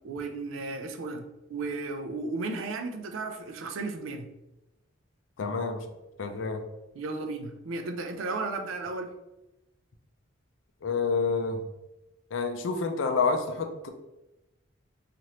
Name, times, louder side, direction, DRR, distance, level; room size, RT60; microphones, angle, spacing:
voice 1, 0.0-1.2 1.5-4.3 6.9-9.1, right 3 dB, 80° right, 6 dB, 0.4 m, -34 dB
voice 2, 5.4-5.8 6.2-6.6 10.8-11.6 12.3-13.9, left 4 dB, 75° left, 5 dB, 0.4 m, -28 dB
3.1 x 2.5 x 2.8 m, 0.98 s
head